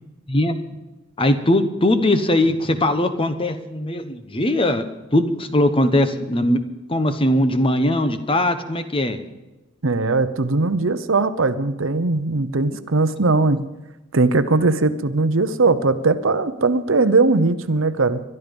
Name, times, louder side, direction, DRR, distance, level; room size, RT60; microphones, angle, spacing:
voice 1, 1.2-4.8 5.1-6.6 6.9-9.2, left 1 dB, 25° left, 10 dB, 1.0 m, -20 dB
voice 2, 9.8-13.6 14.1-18.2, right 3 dB, 65° right, 12 dB, 0.9 m, -19 dB
22.0 x 12.0 x 5.3 m, 1.1 s
head